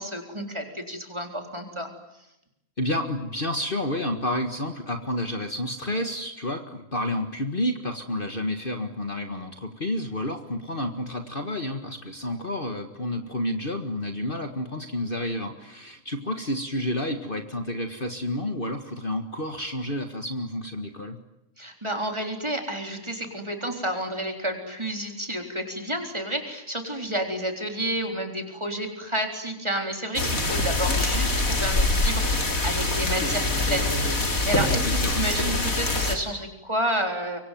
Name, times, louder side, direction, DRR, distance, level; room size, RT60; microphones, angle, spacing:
voice 1, 0.0-1.9 21.6-37.4, right 1 dB, 20° right, 4 dB, 4.0 m, -30 dB
voice 2, 2.8-21.2 34.8-35.3, left 1 dB, 40° left, 6 dB, 1.9 m, -30 dB
sound 1, 30.2-36.2, left 2 dB, 75° left, 3.8 m, -24 dB
25.0 x 24.0 x 9.4 m, 0.86 s
omnidirectional pair, 1.5 m